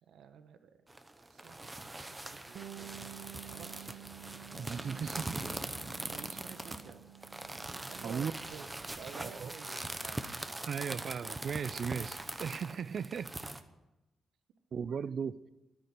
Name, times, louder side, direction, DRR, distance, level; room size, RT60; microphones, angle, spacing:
voice 1, 0.0-3.2 3.4-4.0 4.7-5.3 5.9-7.1 7.8-10.3 10.9-11.1 11.9-12.1, right 7 dB, 85° right, 8 dB, 1.3 m, -52 dB
sound 1, 0.9-13.6, right 2 dB, 10° right, 0.8 m, -42 dB
Bass guitar, 2.5-12.2, right 14 dB, 60° right, 0.9 m, -53 dB
voice 2, 4.6-5.4 8.0-8.3 9.2-9.5 10.6-13.3 14.7-15.4, right 6 dB, 45° right, 17 dB, 0.5 m, -37 dB
sound 2, 8.0-13.3, right 3 dB, 25° right, 4.1 m, -62 dB
12.0 x 10.5 x 9.5 m, 1.0 s
wide cardioid pair, 170°, 0 cm